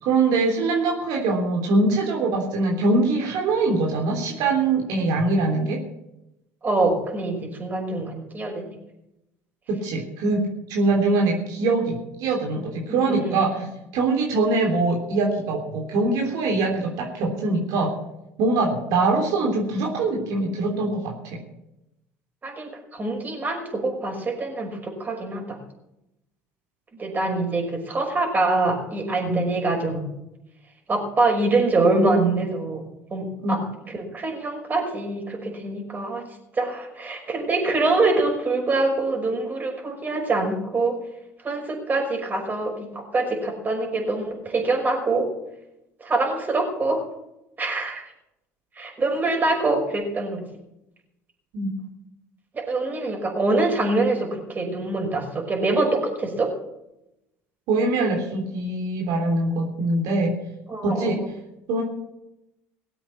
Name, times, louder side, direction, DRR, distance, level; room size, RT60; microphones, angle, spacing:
voice 1, 0.0-5.8 9.7-13.7 13.9-17.9 18.4-21.4 29.3-29.4 33.4-33.7 51.5-51.7 57.7-60.3 60.8-61.2 61.7-61.8, right 3 dB, 70° right, 0 dB, 3.4 m, -23 dB
voice 2, 6.6-8.7 12.9-13.7 22.4-25.6 27.0-30.0 30.9-32.8 33.1-33.6 33.9-36.3 36.5-41.0 41.4-45.3 46.0-47.0 47.6-48.0 48.8-50.4 52.5-56.5 60.7-61.3, right 2 dB, 30° right, 2 dB, 5.7 m, -24 dB
18.5 x 7.9 x 7.5 m, 0.87 s
supercardioid pair, 85°, 6 cm